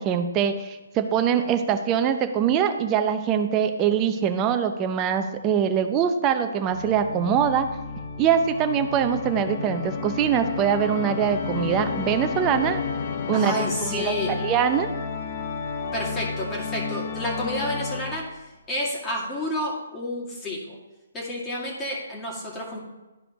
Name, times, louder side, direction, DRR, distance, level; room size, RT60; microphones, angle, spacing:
voice 1, 0.0-7.7 8.2-12.8 13.3-14.9, right 8 dB, 20° right, 7 dB, 0.7 m, -23 dB
Organ, 6.6-18.4, left 6 dB, 40° left, 1.0 m, -32 dB
voice 2, 13.3-14.3 15.9-18.4 18.7-20.8 21.1-22.8, left 1 dB, 15° left, -4 dB, 2.1 m, -30 dB
12.5 x 5.0 x 3.0 m, 1.1 s
figure-of-eight pair, 140°, 0 cm